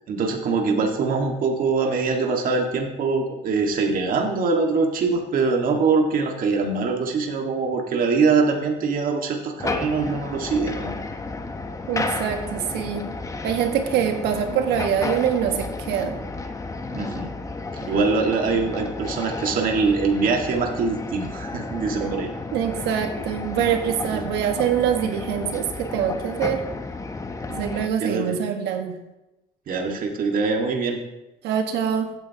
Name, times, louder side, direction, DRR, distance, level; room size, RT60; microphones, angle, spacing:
voice 1, 0.1-10.9 16.9-17.3 17.8-22.3 24.1-24.2 27.5-27.6 28.0-28.4 29.7-31.0, right 4 dB, 55° right, 2 dB, 1.8 m, -23 dB
sound 1, 9.6-27.9, left 3 dB, 20° left, 0.9 m, -32 dB
voice 2, 11.9-13.1 13.4-16.2 22.0-22.1 22.5-26.7 27.6-29.0 31.4-32.1, right 8 dB, 85° right, 5 dB, 1.5 m, -24 dB
15.5 x 9.5 x 2.9 m, 0.96 s
cardioid pair, 110°, 17 cm